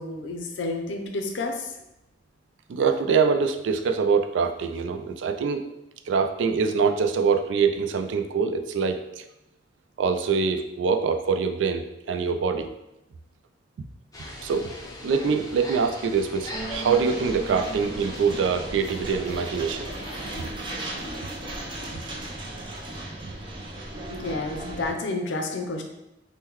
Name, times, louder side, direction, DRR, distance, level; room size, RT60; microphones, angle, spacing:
voice 1, 0.0-1.8 24.1-25.8, left 2 dB, 85° left, 4 dB, 0.5 m, -30 dB
voice 2, 2.7-5.6 6.1-9.2 10.0-12.7 14.4-14.7 15.0-19.9 21.9-22.0, right 5 dB, 80° right, 7 dB, 0.3 m, -24 dB
sound 1, 14.1-20.4, left 1 dB, 20° left, 0.5 m, -40 dB
sound 2, 16.5-24.9, right 1 dB, 25° right, 0.5 m, -36 dB
3.6 x 2.2 x 2.9 m, 0.88 s
head